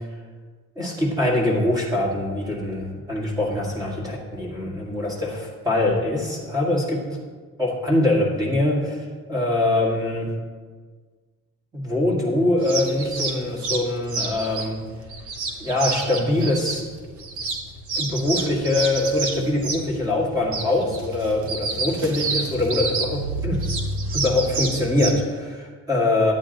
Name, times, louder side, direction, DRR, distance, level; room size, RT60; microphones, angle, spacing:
voice 1, 0.7-7.0 7.6-10.3 11.7-14.8 15.6-16.9 18.0-23.6 24.1-26.3, left 2 dB, 15° right, -3 dB, 1.9 m, -23 dB
sound 1, 12.6-25.1, right 3 dB, 80° right, 1.3 m, -29 dB
10.5 x 8.6 x 4.0 m, 1.5 s
cardioid pair, 175°, 29 cm